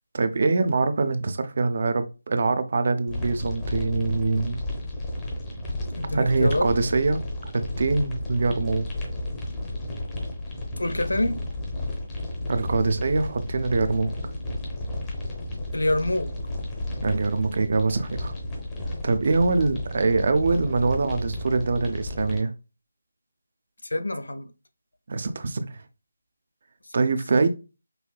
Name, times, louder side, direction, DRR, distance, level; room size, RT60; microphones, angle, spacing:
voice 1, 0.1-4.6 6.1-8.9 12.5-14.1 17.0-18.3 19.0-22.5 25.1-25.8 26.9-27.5, right 3 dB, 45° right, 0.5 m, -24 dB
sound 1, 3.1-22.4, left 1 dB, 15° left, 0.8 m, -33 dB
voice 2, 5.9-6.7 10.8-11.4 15.7-16.3 23.8-24.5, left 1 dB, 75° left, 0.7 m, -26 dB
5.5 x 2.1 x 2.3 m
figure-of-eight pair, 160°, 0 cm